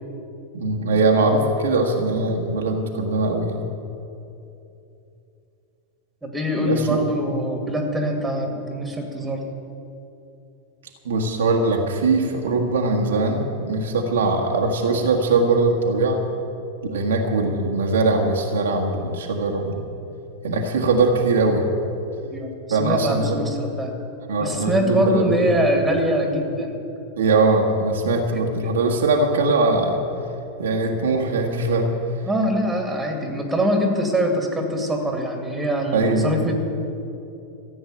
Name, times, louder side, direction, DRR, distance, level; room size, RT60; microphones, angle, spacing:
voice 1, 0.5-3.6 6.5-7.0 11.0-16.2 16.9-19.9 20.4-21.6 22.7-23.4 24.3-25.8 27.2-30.0 30.6-31.9 35.9-36.5, right 3 dB, 65° right, 1 dB, 1.6 m, -21 dB
voice 2, 6.2-9.4 22.2-23.9 24.4-26.8 28.3-28.7 32.2-36.5, equal, 10° right, 3 dB, 2.2 m, -23 dB
14.5 x 7.9 x 8.9 m, 2.8 s
figure-of-eight pair, 90°, 0 cm